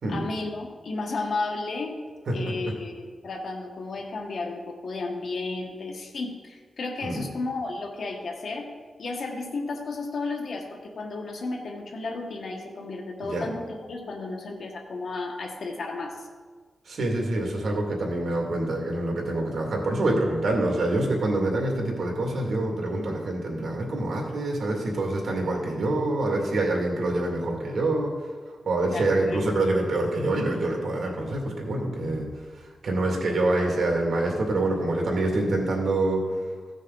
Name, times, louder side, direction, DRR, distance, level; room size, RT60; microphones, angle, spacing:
voice 1, 0.1-2.0 2.3-8.7 9.0-16.3 28.8-29.6, left 3 dB, 65° left, 1 dB, 1.3 m, -33 dB
voice 2, 16.9-28.2 28.7-32.3 32.6-36.2, right 2 dB, 65° right, 0 dB, 2.2 m, -26 dB
15.0 x 6.4 x 3.9 m, 1.5 s
wide cardioid pair, 135°, 0 cm